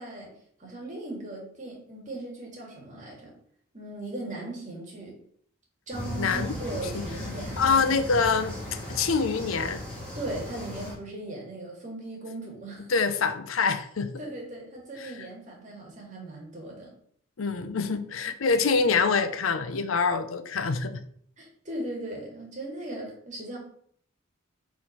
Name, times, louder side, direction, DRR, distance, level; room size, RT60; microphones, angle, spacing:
voice 1, 0.0-3.3 3.7-5.2 5.9-7.8 10.1-12.9 14.2-16.9 21.4-23.6, right 1 dB, 35° right, -1 dB, 2.1 m, -38 dB
sound 1, 5.9-10.9, left 1 dB, 10° left, 2.7 m, -36 dB
voice 2, 6.2-6.5 6.9-7.0 7.6-9.8 12.9-14.2 15.0-15.1 17.4-21.0, left 5 dB, 70° left, 10 dB, 0.6 m, -25 dB
4.8 x 4.2 x 5.7 m, 0.63 s
head